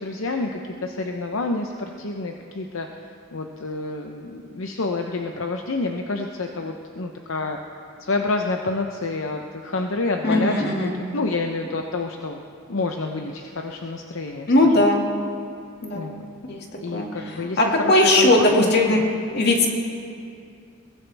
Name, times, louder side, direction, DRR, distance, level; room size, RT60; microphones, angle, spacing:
voice 1, 0.0-2.9 3.3-7.6 8.0-10.7 10.9-12.4 12.7-14.9 15.9-16.3 16.8-19.1, left 3 dB, 75° left, 3 dB, 0.8 m, -28 dB
voice 2, 10.2-10.9 14.5-15.0 15.8-16.1 16.5-16.6 16.9-17.1 17.6-19.0 19.3-19.7, left 1 dB, 55° left, 0 dB, 2.1 m, -18 dB
22.0 x 16.5 x 3.4 m, 2.4 s
head